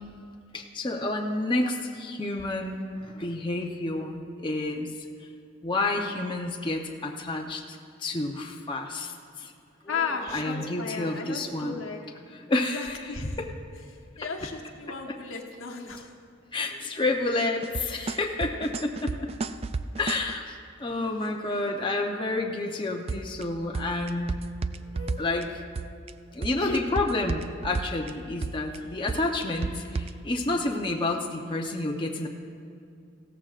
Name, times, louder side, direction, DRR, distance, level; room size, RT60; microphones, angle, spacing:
voice 1, 0.5-4.9 5.6-9.5 10.3-11.8 12.5-13.0 13.4-13.5 16.5-19.3 20.0-24.4 25.2-25.6 26.3-32.3, left 2 dB, 25° left, 1 dB, 0.8 m, -29 dB
voice 2, 9.9-12.0 12.5-13.4 14.2-16.1 21.2-21.6 24.8-25.4 26.6-26.8, left 4 dB, 85° left, 2 dB, 1.3 m, -35 dB
sound 1, 17.6-20.3 23.1-23.4 23.7-25.4 25.8-26.1 26.4-28.1 28.4-28.8 29.1-30.1, right 4 dB, 30° right, 0.3 m, -32 dB
16.5 x 14.0 x 2.5 m, 2.5 s
head